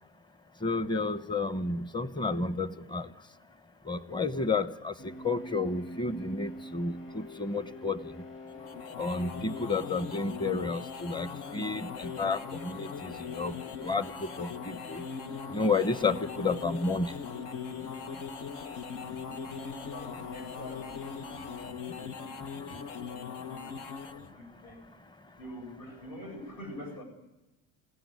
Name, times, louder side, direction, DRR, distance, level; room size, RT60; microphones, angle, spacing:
voice 1, 0.6-3.1 3.9-4.9 5.2-8.0 9.0-13.5 13.8-15.0 15.5-17.1, left 3 dB, 10° left, 13 dB, 1.0 m, -31 dB
sound 1, 5.0-21.7, left 1 dB, 30° left, 2.2 m, -47 dB
sound 2, 8.5-24.3, left 6 dB, 80° left, 1.6 m, -40 dB
voice 2, 19.9-21.8 23.0-23.6 23.9-24.8 25.4-27.0, equal, 60° left, 3 dB, 8.0 m, -46 dB
28.0 x 17.0 x 9.5 m, 1.0 s
cardioid pair, 125°, 40 cm